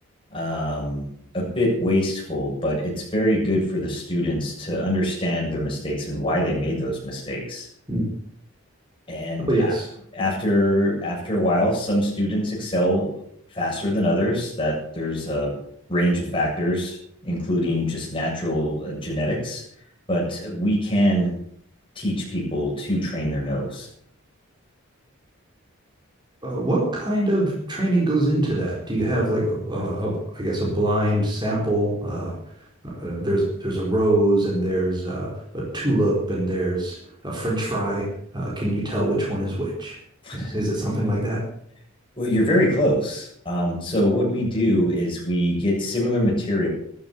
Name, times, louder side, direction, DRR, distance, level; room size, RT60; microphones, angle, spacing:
voice 1, 0.3-1.0 1.3-7.7 9.1-9.7 10.1-13.2 13.5-15.5 15.9-17.0 17.2-19.6 20.1-21.3 22.0-23.9 40.2-40.6 42.2-46.7, equal, 25° left, -3 dB, 7.5 m, -24 dB
voice 2, 9.5-9.9 26.4-32.3 32.8-37.0 37.2-40.0 40.3-41.4, right 1 dB, 20° right, -4 dB, 4.3 m, -24 dB
13.5 x 13.0 x 7.3 m, 0.68 s
head